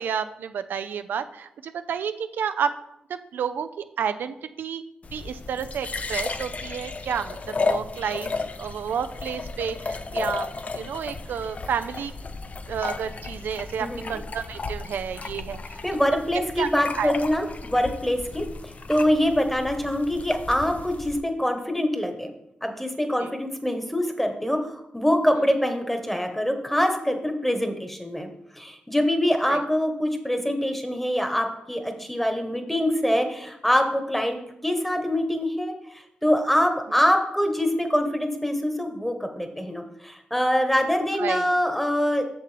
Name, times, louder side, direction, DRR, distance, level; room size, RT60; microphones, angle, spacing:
voice 1, 0.0-2.8 3.1-4.8 5.1-12.1 12.7-16.1 16.3-16.7 17.0-17.1 23.2-23.3 29.4-29.6 41.2-41.4, right 7 dB, 80° right, 10 dB, 0.3 m, -31 dB
sound 1, 5.0-21.2, left 3 dB, 45° left, 0.5 m, -34 dB
voice 2, 13.8-14.2 15.8-22.3 22.6-28.3 28.5-34.4 34.6-42.2, equal, 5° left, 5 dB, 1.2 m, -24 dB
6.8 x 6.5 x 3.4 m, 0.82 s
cardioid pair, 50°, 3 cm